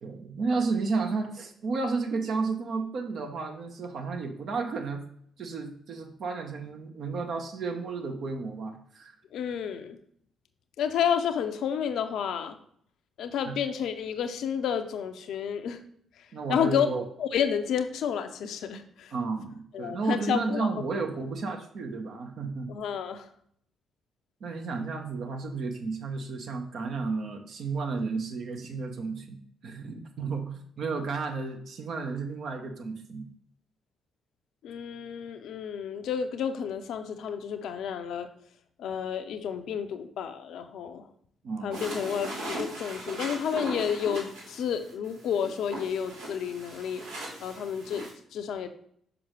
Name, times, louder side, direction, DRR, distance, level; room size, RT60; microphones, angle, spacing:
voice 1, 0.0-5.1 5.4-9.1 13.5-13.6 16.3-17.0 19.1-22.7 24.4-33.3 41.4-41.8, right 4 dB, 55° right, 4 dB, 0.9 m, -32 dB
voice 2, 9.3-10.0 10.8-12.6 13.2-15.8 16.5-16.9 17.2-19.1 19.7-20.7 22.7-23.3 34.6-38.3 38.8-41.1 41.6-47.0 47.4-48.7, left 8 dB, 65° left, 8 dB, 0.5 m, -30 dB
sound 1, 41.7-48.1, right 1 dB, 75° right, 1.5 m, -39 dB
6.0 x 5.1 x 3.1 m, 0.65 s
figure-of-eight pair, 40°, 0 cm